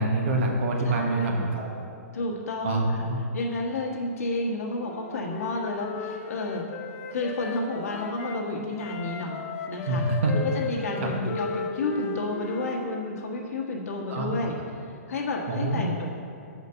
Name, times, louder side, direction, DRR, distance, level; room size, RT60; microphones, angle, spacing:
voice 1, 0.0-1.7 2.6-3.2 9.8-10.3 11.0-11.1 14.1-14.3 15.5-15.8, right 2 dB, 55° right, 0 dB, 1.4 m, -26 dB
voice 2, 0.8-1.5 2.1-3.0 3.3-6.6 7.1-9.4 9.7-10.0 10.5-14.6 15.1-16.1, left 2 dB, 70° left, -1 dB, 1.6 m, -31 dB
Wind instrument woodwind instrument, 4.8-8.4 8.8-12.9, left 6 dB, 25° left, 0.6 m, -36 dB
6.4 x 5.1 x 6.8 m, 2.5 s
hypercardioid pair, 155°, 8 cm